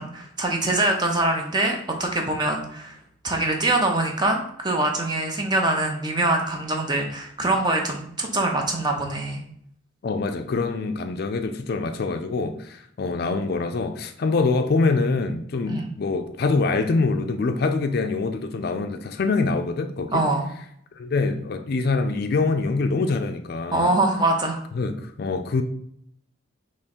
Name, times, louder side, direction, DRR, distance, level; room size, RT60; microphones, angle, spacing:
voice 1, 0.0-3.0 3.2-9.4 15.7-15.9 20.1-20.5 23.7-24.6, right 2 dB, 20° right, 0.6 m, -24 dB
voice 2, 10.0-20.3 21.0-24.0 24.7-25.6, left 3 dB, 50° left, 0.4 m, -25 dB
3.6 x 3.1 x 4.3 m
head